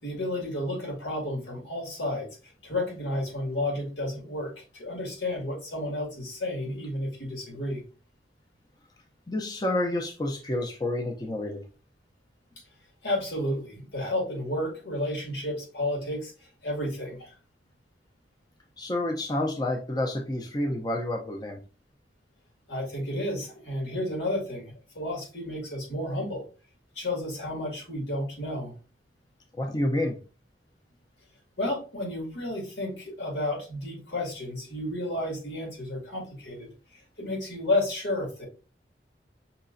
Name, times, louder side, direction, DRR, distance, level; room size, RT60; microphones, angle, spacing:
voice 1, 0.0-7.8 13.0-17.3 22.7-26.5 27.0-28.7 31.6-38.5, left 1 dB, 90° left, 0 dB, 2.0 m, -32 dB
voice 2, 9.3-11.6 18.8-21.6 29.6-30.2, left 1 dB, 25° left, 2 dB, 0.5 m, -29 dB
5.6 x 3.0 x 2.5 m, 0.34 s
head